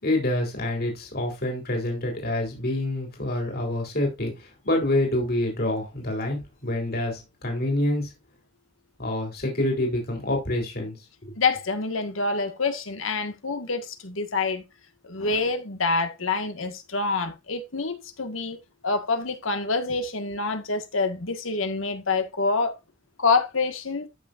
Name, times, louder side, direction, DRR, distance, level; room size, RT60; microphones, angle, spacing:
voice 1, 0.0-8.1 9.0-10.9 11.2-11.3, left 1 dB, 50° left, 3.8 m, -27 dB
voice 2, 11.4-14.6 15.0-18.6 18.8-22.7 23.2-24.1, left 4 dB, 85° left, 1.7 m, -26 dB
14.0 x 6.2 x 2.6 m
head